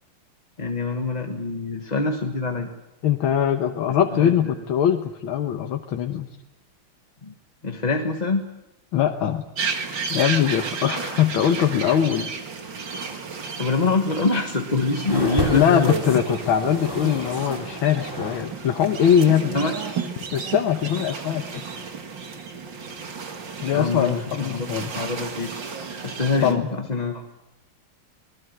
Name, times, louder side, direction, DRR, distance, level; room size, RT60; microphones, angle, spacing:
voice 1, 0.6-2.7 4.1-4.3 7.3-7.4 7.6-8.4 13.6-15.9 19.5-19.7 23.7-25.5 26.0-26.6 26.9-27.4, left 3 dB, 25° left, 3 dB, 1.2 m, -25 dB
voice 2, 3.0-6.3 8.9-9.4 10.1-12.3 15.2-19.6 20.3-21.4 23.6-24.9 26.4-26.7, left 9 dB, 75° left, 5 dB, 1.9 m, -22 dB
sound 1, 9.6-26.5, right 5 dB, 60° right, 2.6 m, -33 dB
sound 2, 15.1-18.5 18.8-19.7 20.4-20.5, equal, 10° right, 6.5 m, -32 dB
25.5 x 20.0 x 7.8 m, 0.94 s
omnidirectional pair, 2.3 m